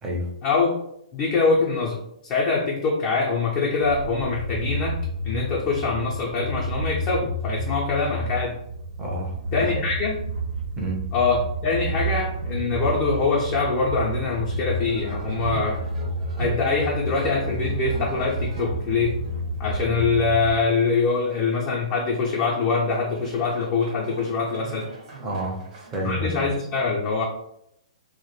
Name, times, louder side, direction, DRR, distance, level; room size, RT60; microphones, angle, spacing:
voice 1, 0.4-0.7 1.1-5.0 5.2-8.6 9.5-10.2 11.1-15.8 16.4-19.2 19.6-24.9 26.0-27.2, left 4 dB, 30° left, -3 dB, 0.5 m, -24 dB
sound 1, 3.8-20.5, right 1 dB, 75° right, 0.4 m, -30 dB
voice 2, 9.0-9.9 10.8-11.1 19.9-20.0 25.2-26.5, equal, 15° right, -1 dB, 0.6 m, -30 dB
sound 2, 14.8-26.1, right 3 dB, 55° right, 1.1 m, -42 dB
2.1 x 2.0 x 3.0 m, 0.77 s
figure-of-eight pair, 115°, 4 cm